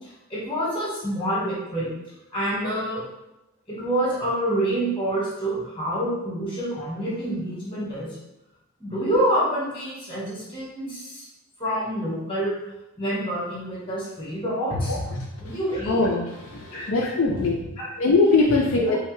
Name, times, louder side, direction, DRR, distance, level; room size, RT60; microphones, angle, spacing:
voice 1, 0.0-1.9 2.3-3.0 3.7-8.2 8.8-11.2 11.6-12.6 13.0-16.1 16.7-16.8 17.8-17.9 18.8-19.0, right 1 dB, 25° left, -8 dB, 1.5 m, -27 dB
voice 2, 15.9-17.6 18.0-19.0, left 3 dB, 65° left, -1 dB, 0.4 m, -21 dB
4.7 x 2.2 x 3.2 m, 0.92 s
head